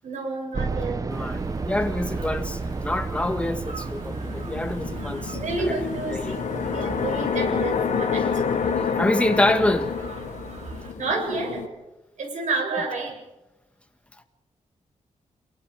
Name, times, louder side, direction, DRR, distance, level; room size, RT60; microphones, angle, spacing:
voice 1, 0.0-1.1 5.3-8.7 11.0-11.7 12.2-13.2, right 3 dB, 80° right, 7.6 m, -30 dB
sound 1, 0.5-7.3, right 3 dB, 30° right, 1.0 m, -32 dB
voice 2, 1.1-5.8 6.1-6.4 9.0-10.0, left 1 dB, 10° left, 1.7 m, -26 dB
sound 2, 1.1-10.9, right 3 dB, 60° right, 3.0 m, -41 dB
sound 3, 2.4-2.5 3.7-11.7, left 6 dB, 85° left, 1.9 m, -28 dB
27.5 x 23.5 x 5.1 m
wide cardioid pair, 120°, 12 cm